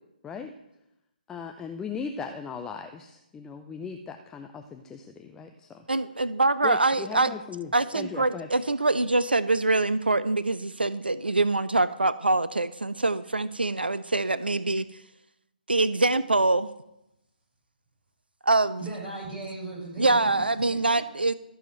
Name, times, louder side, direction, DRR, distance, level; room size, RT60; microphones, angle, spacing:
voice 1, 1.3-5.9 6.6-8.5, left 6 dB, 10° left, 6 dB, 0.6 m, -38 dB
voice 2, 5.9-7.3 7.7-14.9 15.7-16.7 18.4-18.8 20.0-21.3, right 2 dB, 80° right, 15 dB, 0.5 m, -24 dB
voice 3, 18.8-20.8, right 2 dB, 10° right, -7 dB, 6.6 m, -37 dB
14.5 x 7.2 x 7.7 m, 0.86 s
figure-of-eight pair, 135°, 5 cm